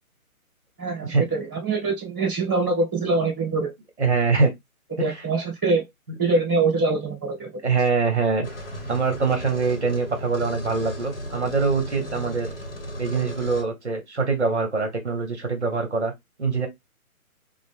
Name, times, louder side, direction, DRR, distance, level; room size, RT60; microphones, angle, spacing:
voice 1, 0.8-3.7 5.0-5.8 6.2-7.5, right 3 dB, 15° right, 0.9 m, -24 dB
voice 2, 4.0-4.5 5.0-5.1 7.6-8.5 8.9-12.5 13.0-16.1 16.4-16.7, right 4 dB, 50° right, 1.0 m, -23 dB
sound 1, 8.4-13.6, equal, 40° left, 0.9 m, -35 dB
3.6 x 2.0 x 3.5 m
hypercardioid pair, 175°, 43 cm